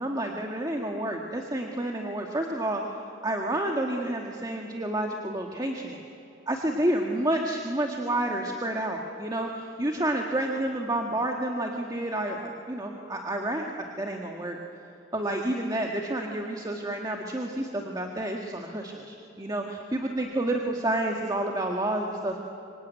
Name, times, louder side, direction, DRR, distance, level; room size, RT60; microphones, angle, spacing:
voice 1, 0.0-2.8 3.2-6.0 6.5-13.6 14.0-14.6 15.1-22.4, right 1 dB, 20° right, 1 dB, 1.7 m, -29 dB
26.0 x 25.0 x 9.3 m, 2.8 s
head